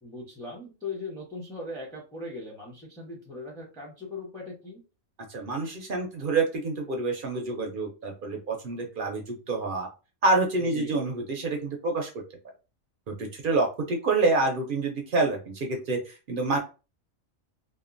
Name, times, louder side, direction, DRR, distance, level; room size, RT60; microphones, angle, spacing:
voice 1, 0.0-4.8 10.6-11.0, left 2 dB, 5° left, -1 dB, 0.5 m, -39 dB
voice 2, 5.3-9.9 10.2-12.1 13.1-16.6, right 3 dB, 60° right, 2 dB, 0.5 m, -27 dB
2.8 x 2.2 x 2.4 m, 0.31 s
omnidirectional pair, 1.4 m